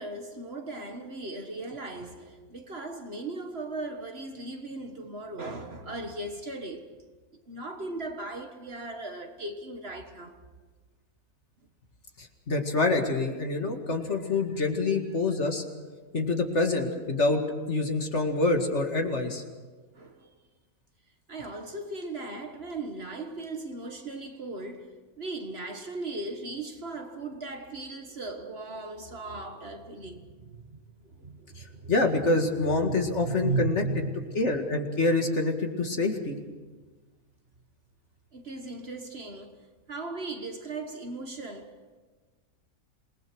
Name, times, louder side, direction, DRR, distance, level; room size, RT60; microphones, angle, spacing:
voice 1, 0.0-6.9 7.5-10.4 19.9-20.3 21.3-34.4 38.3-39.6 39.9-42.0, right 3 dB, 45° right, 1.7 m, -37 dB
voice 2, 12.2-15.6 16.1-17.4 17.7-19.4 31.6-33.8 34.3-36.4, left 2 dB, 50° left, 2.3 m, -26 dB
27.5 x 20.0 x 6.2 m
omnidirectional pair, 1.6 m